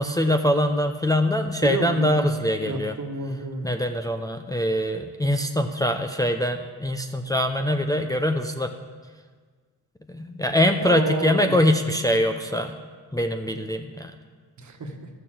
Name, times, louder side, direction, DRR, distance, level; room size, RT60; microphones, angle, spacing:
voice 1, 0.0-2.9 3.6-8.7 10.1-12.8 13.1-14.1, left 1 dB, 10° left, 4 dB, 0.7 m, -23 dB
voice 2, 1.6-3.7 10.8-11.5 14.6-15.1, right 3 dB, 45° right, 4 dB, 1.7 m, -30 dB
12.0 x 6.7 x 7.5 m, 1.5 s
supercardioid pair, 60°, 39 cm